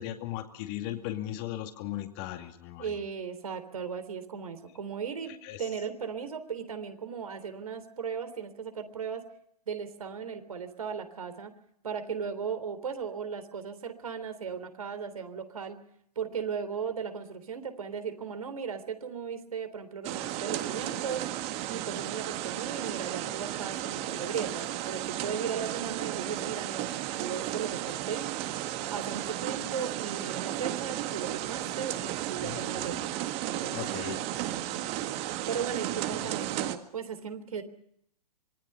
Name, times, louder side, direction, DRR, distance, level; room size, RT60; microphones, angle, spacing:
voice 1, 0.0-2.9 5.3-5.6 32.4-33.0 33.7-34.2, left 13 dB, 35° left, 6 dB, 2.3 m, -37 dB
voice 2, 2.8-9.2 9.7-11.5 11.8-15.8 16.2-21.3 21.7-28.3 28.9-33.1 33.5-34.8 35.5-37.6, right 6 dB, 65° right, 9 dB, 3.5 m, -37 dB
sound 1, 20.0-36.8, right 14 dB, 30° right, 1.8 m, -34 dB
26.0 x 21.5 x 5.6 m, 0.71 s
figure-of-eight pair, 110°, 20 cm